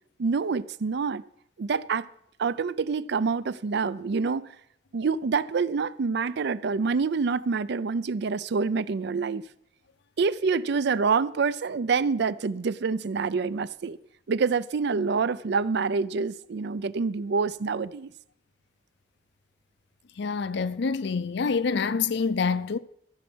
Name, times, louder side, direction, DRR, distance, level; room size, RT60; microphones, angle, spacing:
voice 1, 0.2-1.2 1.6-2.1 2.4-4.5 4.9-9.4 10.2-14.0 14.3-18.1, right 5 dB, 60° right, 0.4 m, -26 dB
voice 2, 20.2-22.8, left 5 dB, 65° left, 0.5 m, -26 dB
14.5 x 7.1 x 6.2 m
head